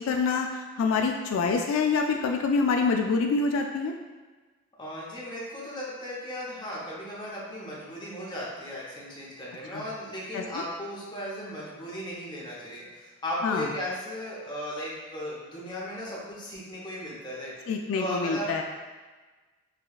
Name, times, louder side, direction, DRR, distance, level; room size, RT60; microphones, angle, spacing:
voice 1, 0.0-3.9 9.7-9.8 10.3-10.6 13.4-13.7 17.7-18.6, left 4 dB, 85° left, 3 dB, 0.3 m, -26 dB
voice 2, 4.8-17.5 17.9-18.6, equal, 20° left, -6 dB, 0.8 m, -36 dB
4.8 x 2.3 x 2.4 m, 1.3 s
head